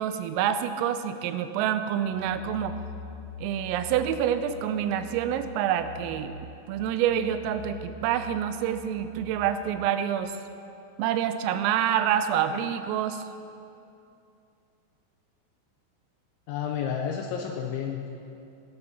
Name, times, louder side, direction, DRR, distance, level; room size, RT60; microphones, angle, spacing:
voice 1, 0.0-2.8 3.4-6.4 6.7-10.4 11.0-13.2, right 9 dB, 85° right, 10 dB, 3.2 m, -27 dB
sound 1, 2.0-9.6, left 1 dB, 50° left, 2.1 m, -43 dB
voice 2, 16.5-18.1, left 8 dB, 90° left, 2 dB, 2.7 m, -31 dB
18.0 x 8.0 x 6.0 m, 2.6 s
omnidirectional pair, 5.9 m